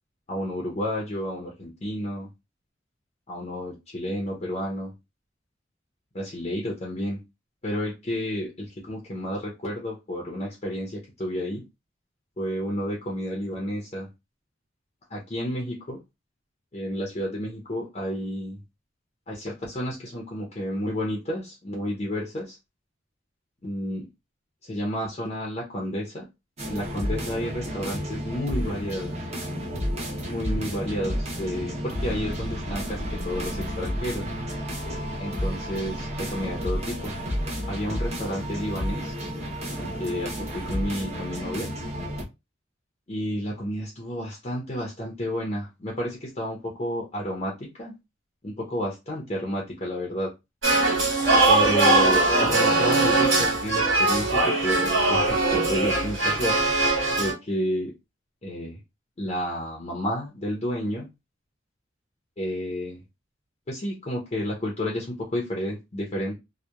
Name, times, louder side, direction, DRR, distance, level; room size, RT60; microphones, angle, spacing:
voice 1, 0.3-2.3 3.3-4.9 6.1-7.2 7.6-11.6 12.4-14.1 15.1-16.0 16.7-18.6 19.3-22.6 23.6-24.1 24.6-26.3 26.7-29.1 30.3-34.3 35.2-37.1 37.7-39.1 39.8-41.7 43.1-47.9 48.4-50.3 51.5-56.6 57.2-57.9 58.4-58.8 59.2-61.1 62.4-63.0 63.7-66.4, equal, 35° left, 0.6 m, -31 dB
sound 1, 26.6-42.2, equal, 35° right, 0.8 m, -31 dB
sound 2, 50.6-57.3, right 2 dB, 85° right, 1.5 m, -21 dB
2.8 x 2.1 x 2.2 m
head